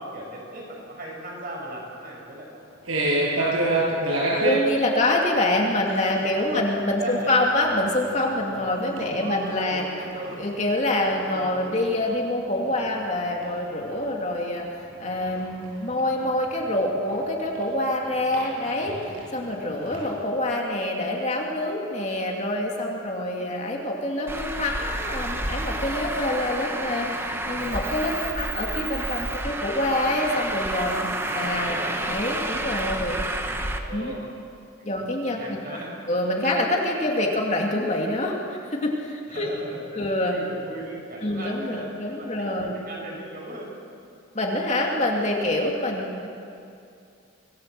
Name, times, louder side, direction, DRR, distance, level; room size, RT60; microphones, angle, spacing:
voice 1, 0.0-2.6 3.1-4.0 6.2-6.6 7.0-7.3 8.9-10.4 11.0-11.9 14.9-15.2 29.2-29.7 31.3-32.0 33.5-34.2 35.4-35.9 39.3-39.8 40.3-43.7, right 1 dB, 45° right, -2 dB, 7.0 m, -39 dB
sound 1, 2.9-4.6 5.7-6.1 6.3-6.6 7.1-7.2 7.6-7.7 8.0-8.7 9.0-10.3 10.6-13.9 14.3-17.6 18.1-20.1, right 2 dB, 90° right, 7.7 m, -29 dB
voice 2, 4.4-9.8 10.4-33.2 33.9-34.1 34.8-35.4 36.1-39.5 39.9-40.4 41.2-42.8 44.3-46.3, left 1 dB, 35° left, -1 dB, 2.7 m, -26 dB
Traffic noise roadway noise, 24.3-33.8, right 1 dB, 10° right, 1.2 m, -30 dB
25.5 x 19.0 x 7.8 m, 2.6 s
head